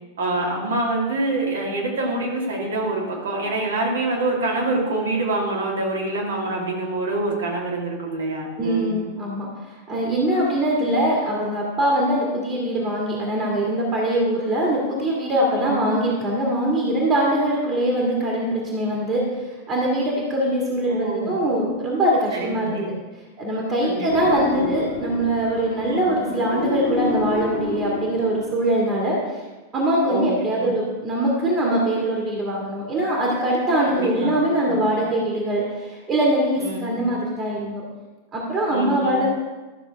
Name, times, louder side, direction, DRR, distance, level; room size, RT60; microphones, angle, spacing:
voice 1, 0.2-9.0 15.6-15.8 20.9-21.4 22.3-22.9 23.8-24.8 25.9-26.3 30.0-30.9 33.9-34.3 34.6-34.8 36.6-37.1 38.7-39.3, right 2 dB, 65° right, -2 dB, 2.2 m, -26 dB
voice 2, 8.6-9.5 9.9-22.8 23.4-29.4 29.7-37.8 38.3-39.3, right 1 dB, 25° right, -3 dB, 2.1 m, -22 dB
sound 1, 24.1-28.7, left 3 dB, 65° left, 1.1 m, -28 dB
13.0 x 6.5 x 3.6 m, 1.2 s
figure-of-eight pair, 90°, 0 cm